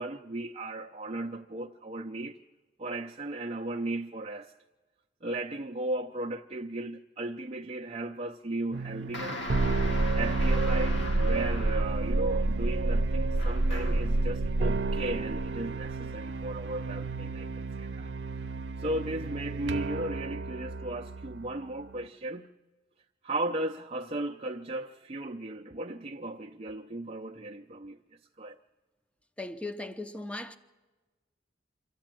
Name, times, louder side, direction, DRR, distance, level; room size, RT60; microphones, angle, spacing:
voice 1, 0.0-2.4 2.8-4.5 5.2-9.4 10.1-18.1 18.8-22.5 23.2-28.0 28.4-28.6, right 1 dB, 35° right, 0.6 m, -36 dB
sound 1, 8.7-22.0, right 2 dB, 75° right, 0.7 m, -30 dB
sound 2, 9.1-12.2 13.4-14.2, left 2 dB, 90° left, 1.8 m, -39 dB
voice 2, 29.4-30.6, left 2 dB, 5° left, 0.8 m, -38 dB
25.5 x 13.5 x 9.1 m
head